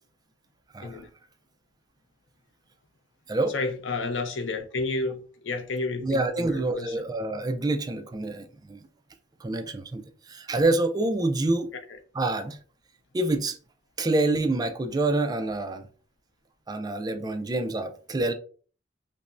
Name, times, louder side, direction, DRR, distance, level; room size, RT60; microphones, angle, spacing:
voice 1, 3.5-7.0, left 3 dB, 80° left, 0.6 m, -31 dB
voice 2, 6.0-8.8 9.4-11.7 12.1-12.6 13.1-13.6 14.0-15.9 16.7-18.3, right 2 dB, 20° right, 0.3 m, -27 dB
5.3 x 2.0 x 2.5 m
head